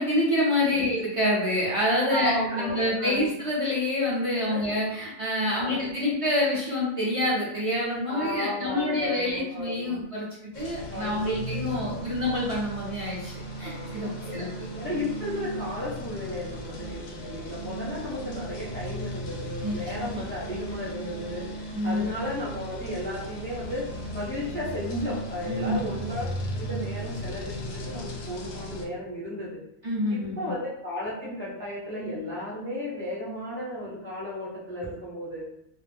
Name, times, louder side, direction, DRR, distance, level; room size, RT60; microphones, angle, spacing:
voice 1, 0.0-10.2 10.5-13.3 13.6-14.5 19.6-19.8 20.1-20.2 21.7-22.1 25.5-25.9 29.8-30.3, left 1 dB, 40° right, -7 dB, 0.5 m, -27 dB
voice 2, 2.1-3.3 4.5-4.6 5.5-5.9 8.1-10.0 10.9-12.0 13.6-26.3 26.6-29.6 30.1-35.4, left 1 dB, 15° left, -7 dB, 0.4 m, -34 dB
sound 1, 10.5-28.8, right 1 dB, 75° left, 0.9 m, -36 dB
2.4 x 2.0 x 3.3 m, 0.79 s
omnidirectional pair, 1.4 m